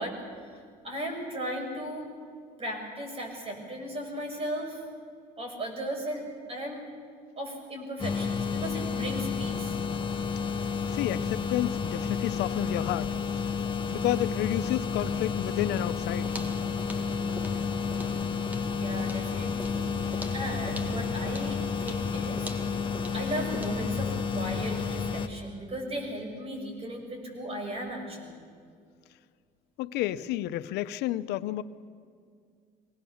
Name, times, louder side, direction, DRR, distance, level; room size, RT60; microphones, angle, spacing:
voice 1, 0.0-2.1 2.6-4.8 5.4-6.2 6.5-6.9 7.4-9.8 18.7-28.4, right 1 dB, 35° right, 2 dB, 6.5 m, -36 dB
sound 1, 8.0-25.3, left 5 dB, 30° left, 1.4 m, -31 dB
voice 2, 10.9-13.1 13.9-16.3 29.8-31.6, left 14 dB, 90° left, 13 dB, 0.7 m, -30 dB
sound 2, 15.7-23.9, equal, 10° right, 2.0 m, -44 dB
23.0 x 18.5 x 7.2 m, 2.2 s
cardioid pair, 110°, 17 cm